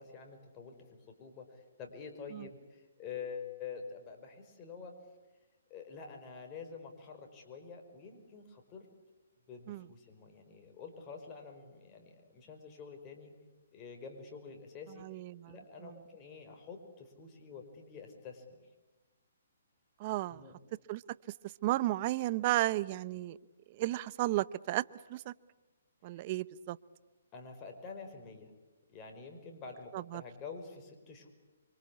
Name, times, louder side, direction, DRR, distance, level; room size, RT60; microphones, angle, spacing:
voice 1, 0.0-4.9 5.7-8.9 9.5-13.3 13.7-15.0 15.5-18.4 20.3-20.6 26.1-26.2 27.3-28.5 28.9-31.3, left 5 dB, 25° left, 4 dB, 5.3 m, -47 dB
voice 2, 15.0-15.5 15.8-15.9 20.0-20.4 20.9-21.0 21.6-23.4 23.8-24.8 25.1-25.3 26.0-26.8 29.9-30.2, right 16 dB, 35° right, 18 dB, 0.8 m, -33 dB
28.0 x 25.0 x 8.5 m, 1.2 s
hypercardioid pair, 145°, 0 cm